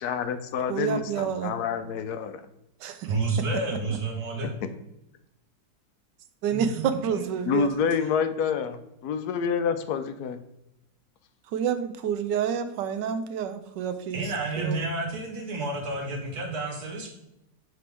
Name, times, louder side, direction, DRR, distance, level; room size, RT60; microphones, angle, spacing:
voice 1, 0.0-2.4 7.5-10.4, left 6 dB, 70° left, 10 dB, 1.0 m, -28 dB
voice 2, 0.7-1.5 2.8-3.1 6.4-7.7 11.5-14.2 14.6-14.8, right 8 dB, 80° right, 9 dB, 1.3 m, -28 dB
voice 3, 3.0-4.5 6.5-6.8 7.1-7.3 14.1-17.1, right 3 dB, 60° right, 1 dB, 1.8 m, -30 dB
9.2 x 3.8 x 3.5 m, 0.86 s
omnidirectional pair, 2.0 m